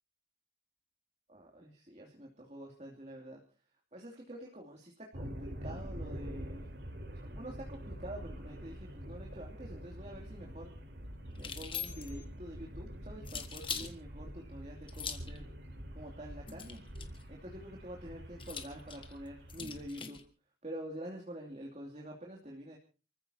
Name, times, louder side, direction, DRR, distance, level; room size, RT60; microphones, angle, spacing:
voice 1, 1.3-3.4 3.9-6.7 7.1-10.7 11.4-15.5 15.9-16.8 17.3-20.2 20.6-22.8, right 1 dB, 35° right, 0 dB, 2.7 m, -47 dB
sound 1, 5.1-19.9, equal, 55° right, 3.8 m, -46 dB
sound 2, 11.3-12.2 13.2-13.9 14.9-15.4 16.5-17.2 18.4-20.2, left 7 dB, 25° left, 1.6 m, -42 dB
29.0 x 15.0 x 2.8 m, 0.34 s
head